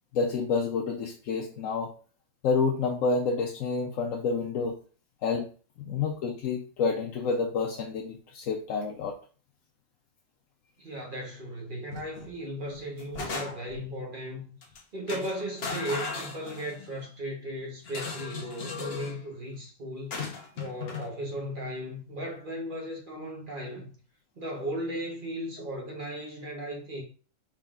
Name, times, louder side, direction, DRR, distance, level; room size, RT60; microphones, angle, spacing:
voice 1, 0.1-1.9 2.4-4.7 5.2-5.5 5.8-9.1, left 4 dB, 75° left, 1.0 m, -29 dB
voice 2, 10.8-14.5 14.9-20.1 20.5-23.9 24.4-27.0, equal, 40° right, 1.1 m, -36 dB
sound 1, 11.9-12.3 12.7-13.8 14.6-14.8 15.1-16.9 17.8-19.2 20.1-21.1, left 4 dB, 50° left, 1.0 m, -37 dB
4.9 x 3.7 x 2.4 m
omnidirectional pair, 1.4 m